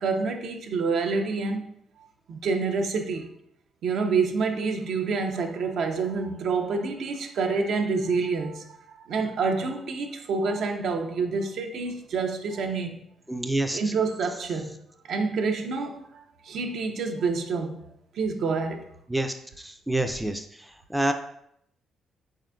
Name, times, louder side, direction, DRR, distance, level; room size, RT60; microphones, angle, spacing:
voice 1, 0.0-1.6 2.3-3.3 3.8-13.0 13.7-14.8 15.1-17.9 18.1-18.8, right 4 dB, 70° right, 0.5 m, -28 dB
voice 2, 13.3-13.8 19.1-20.5 20.9-21.1, right 1 dB, 5° right, 0.3 m, -27 dB
4.2 x 3.7 x 2.3 m
cardioid pair, 90°, 0 cm